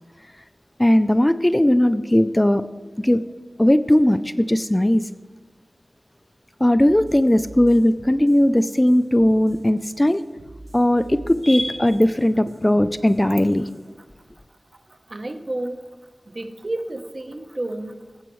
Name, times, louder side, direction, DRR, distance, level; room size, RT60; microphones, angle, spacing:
voice 1, 0.8-2.6 3.0-3.2 3.6-5.0 6.6-10.2 10.7-13.7, left 1 dB, 15° left, 13 dB, 0.3 m, -18 dB
sound 1, 6.8-13.9, right 1 dB, 80° right, 2.7 m, -45 dB
voice 2, 14.7-15.9 16.3-18.2, right 1 dB, 40° right, 8 dB, 0.8 m, -31 dB
16.0 x 7.8 x 3.1 m, 1.2 s
wide cardioid pair, 70°, 0 cm